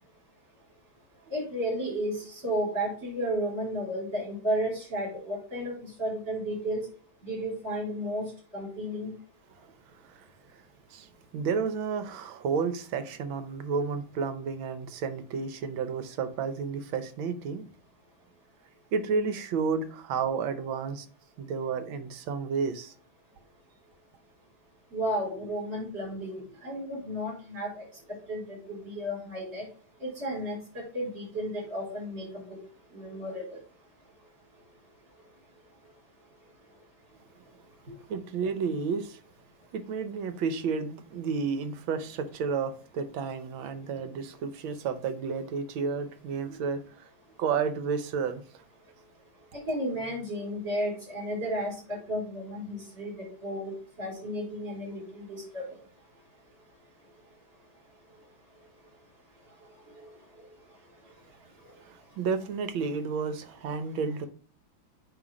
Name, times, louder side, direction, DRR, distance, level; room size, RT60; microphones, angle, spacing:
voice 1, 1.3-6.9 7.2-9.1 24.9-29.7 30.0-32.6 32.9-33.6 49.5-55.8 60.0-60.1, equal, 35° right, 4.7 m, -33 dB
voice 2, 10.9-17.6 18.9-21.1 21.4-22.9 38.1-39.2 39.7-47.1 47.4-48.4 61.8-64.3, right 5 dB, 75° right, 1.6 m, -31 dB
9.2 x 3.2 x 5.0 m
omnidirectional pair, 2.2 m